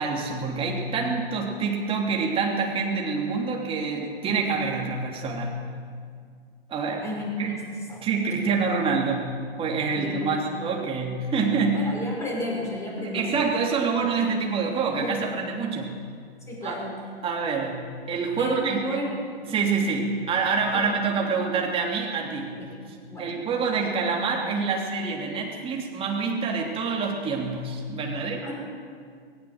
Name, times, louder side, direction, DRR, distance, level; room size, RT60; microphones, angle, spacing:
voice 1, 0.0-5.5 6.7-7.0 7.4-7.5 8.0-11.8 13.0-15.9 16.6-16.8 17.2-19.0 19.5-22.6 23.2-28.5, right 4 dB, 15° right, -1 dB, 3.2 m, -26 dB
voice 2, 7.0-7.6 7.9-8.0 10.0-10.6 11.7-13.3 15.0-15.1 16.5-17.0 18.4-19.1 22.6-22.8 23.1-23.4 28.1-28.5, left 1 dB, 10° left, -3 dB, 5.6 m, -33 dB
19.5 x 19.0 x 7.9 m, 2.1 s
figure-of-eight pair, 120°, 31 cm